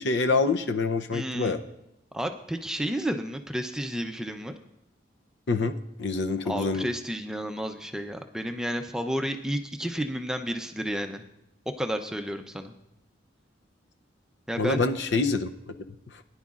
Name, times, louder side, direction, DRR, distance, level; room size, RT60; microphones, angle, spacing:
voice 1, 0.0-1.6 5.5-6.8 14.6-15.5, left 3 dB, 65° left, 8 dB, 0.6 m, -26 dB
voice 2, 1.1-1.6 2.1-4.5 6.4-11.2 11.8-12.7 14.5-14.8, equal, 5° right, 5 dB, 0.5 m, -31 dB
20.5 x 10.5 x 2.4 m, 0.86 s
head